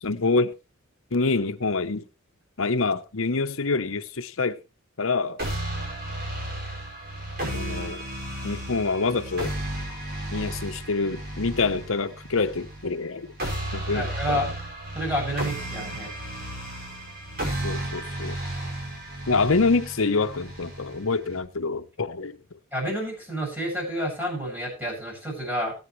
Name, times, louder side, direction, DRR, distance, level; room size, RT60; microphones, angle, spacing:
voice 1, 0.0-0.5 1.1-2.0 2.6-4.6 5.0-5.4 7.5-8.0 8.4-9.5 10.3-13.3 13.7-14.4 17.6-18.4 19.3-22.4, left 3 dB, 65° left, 0.9 m, -26 dB
sound 1, 5.4-21.4, right 1 dB, 45° right, 5.6 m, -33 dB
voice 2, 13.9-14.5 14.9-16.1 22.7-25.7, equal, 10° right, 7.6 m, -29 dB
21.0 x 8.8 x 3.2 m
head